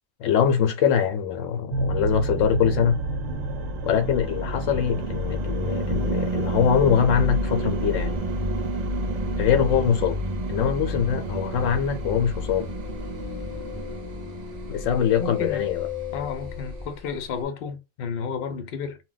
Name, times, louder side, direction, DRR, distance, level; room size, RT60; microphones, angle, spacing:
voice 1, 0.2-3.0 3.8-8.1 9.4-10.2 10.5-12.7 14.7-15.9, left 8 dB, 80° left, 0.9 m, -23 dB
sound 1, 1.7-17.4, right 3 dB, 85° right, 1.0 m, -35 dB
sound 2, 2.0-15.5, equal, 60° right, 0.4 m, -30 dB
sound 3, 12.2-16.9, left 9 dB, 35° left, 0.3 m, -36 dB
voice 2, 14.9-15.6 16.1-19.0, left 5 dB, 55° left, 0.7 m, -32 dB
2.2 x 2.1 x 3.8 m
omnidirectional pair, 1.3 m